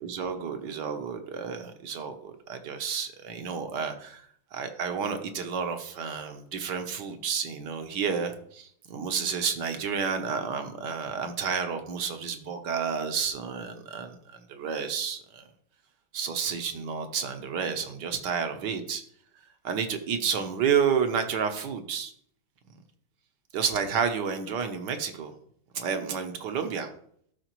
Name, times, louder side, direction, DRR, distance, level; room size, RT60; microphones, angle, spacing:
voice 1, 0.0-4.2 4.5-15.5 16.1-19.0 19.6-22.1 23.5-25.3 25.7-26.9, right 6 dB, 65° right, 7 dB, 1.3 m, -30 dB
13.0 x 5.0 x 3.0 m, 0.65 s
omnidirectional pair, 2.2 m